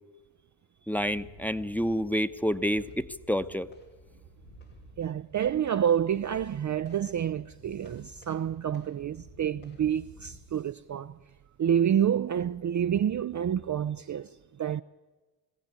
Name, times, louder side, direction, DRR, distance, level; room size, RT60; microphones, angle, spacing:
sound 1, 0.9-10.4, equal, 90° left, 3.1 m, -53 dB
voice 1, 0.9-3.7, equal, 5° left, 1.0 m, -28 dB
voice 2, 5.0-11.2 11.6-14.8, right 9 dB, 35° right, 0.5 m, -28 dB
21.5 x 16.5 x 8.4 m
hypercardioid pair, 40°, 50 cm